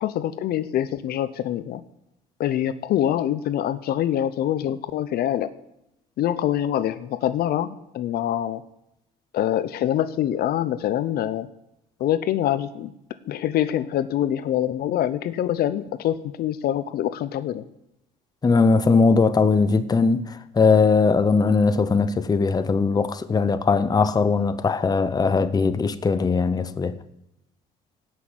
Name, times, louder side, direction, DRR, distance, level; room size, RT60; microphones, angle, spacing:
voice 1, 0.0-1.8 2.4-5.5 6.2-8.6 9.3-11.5 12.0-12.9 13.3-17.6, left 11 dB, 65° left, 0.7 m, -25 dB
voice 2, 18.4-26.9, left 4 dB, 25° left, 0.8 m, -20 dB
17.0 x 6.3 x 8.0 m
cardioid pair, 110°, 17 cm